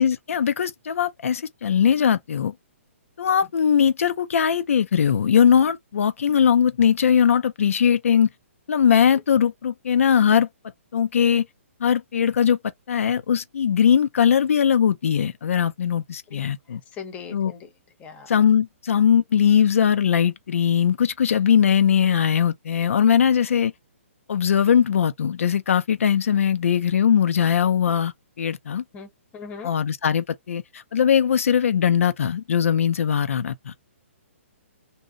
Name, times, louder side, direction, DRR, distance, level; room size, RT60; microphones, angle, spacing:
voice 1, 0.0-2.5 3.2-8.3 8.7-10.5 10.9-11.5 11.8-12.6 12.9-16.8 17.3-17.5 18.3-23.7 24.3-28.8 29.6-33.7, left 8 dB, 75° left, 0.4 m, -20 dB
voice 2, 17.0-17.7 18.0-18.3 28.9-29.7, left 6 dB, 20° left, 0.7 m, -39 dB
2.6 x 2.0 x 2.5 m
hypercardioid pair, 145°, 7 cm